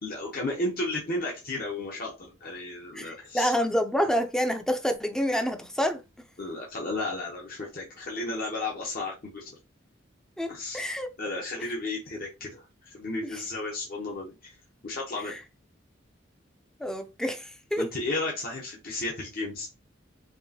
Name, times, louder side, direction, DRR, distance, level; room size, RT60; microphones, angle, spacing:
voice 1, 0.0-3.5 6.4-9.5 10.5-10.8 11.2-14.6 14.8-15.3 17.8-19.7, left 2 dB, 50° left, 0.9 m, -33 dB
voice 2, 2.9-6.0 10.4-11.1 15.3-15.4 16.8-17.9, equal, 5° left, 0.5 m, -28 dB
4.6 x 3.0 x 2.8 m
head